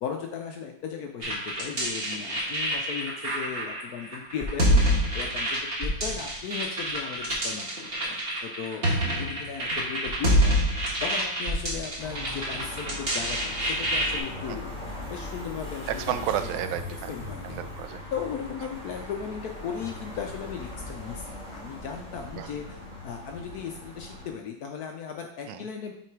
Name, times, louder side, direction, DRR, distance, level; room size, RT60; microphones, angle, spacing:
voice 1, 0.0-10.6 11.0-14.7 15.1-16.0 16.4-16.6 17.1-17.6 18.1-25.9, left 7 dB, 70° left, 3 dB, 0.9 m, -37 dB
sound 1, 1.2-14.2, equal, 35° right, 1.4 m, -27 dB
sound 2, 12.0-24.3, left 1 dB, 5° left, 1.2 m, -39 dB
voice 2, 15.9-17.1 17.4-18.0 22.3-22.5 25.5-25.6, right 10 dB, 90° right, 10 dB, 1.4 m, -31 dB
6.1 x 3.9 x 4.5 m, 0.73 s
omnidirectional pair, 2.1 m